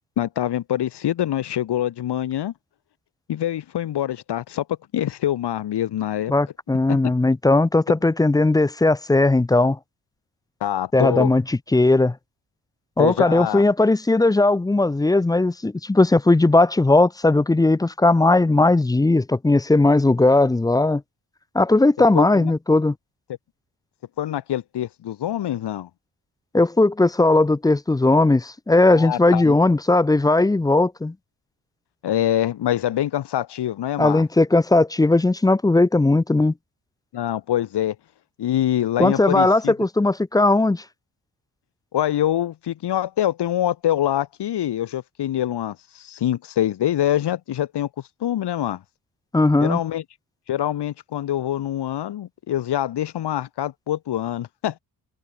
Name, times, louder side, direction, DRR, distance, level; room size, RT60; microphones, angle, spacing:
voice 1, 0.2-2.5 3.3-4.6 4.9-6.3 6.9-7.0 10.6-11.3 13.0-13.6 22.1-22.5 24.2-25.9 28.9-29.6 32.0-34.2 37.1-38.0 38.4-39.7 41.9-47.9 48.2-48.8 49.6-50.0 50.5-54.7, left 11 dB, 70° left, 2.3 m, -25 dB
voice 2, 6.3-9.8 10.9-12.2 13.0-21.0 21.5-22.9 26.5-31.1 34.0-36.5 39.0-40.8 49.3-49.8, left 2 dB, 10° left, 0.5 m, -18 dB
cardioid pair, 110°, 41 cm